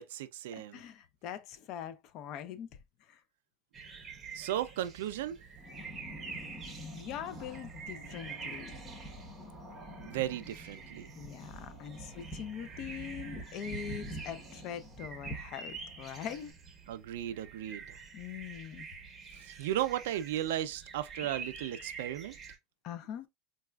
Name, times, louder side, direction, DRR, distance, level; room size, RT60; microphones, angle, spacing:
voice 1, 0.0-0.8 4.3-5.4 10.0-11.1 16.9-18.0 19.3-22.4, right 12 dB, 90° right, 0.4 m, -35 dB
voice 2, 0.5-2.7 3.0-3.2 6.8-8.7 11.1-16.5 18.1-18.9 22.8-23.3, left 9 dB, 50° left, 0.4 m, -42 dB
sound 1, 3.7-22.6, right 5 dB, 15° right, 0.8 m, -47 dB
sound 2, 5.5-16.5, right 1 dB, 10° left, 1.0 m, -47 dB
4.0 x 2.3 x 2.2 m
supercardioid pair, 140°, 0 cm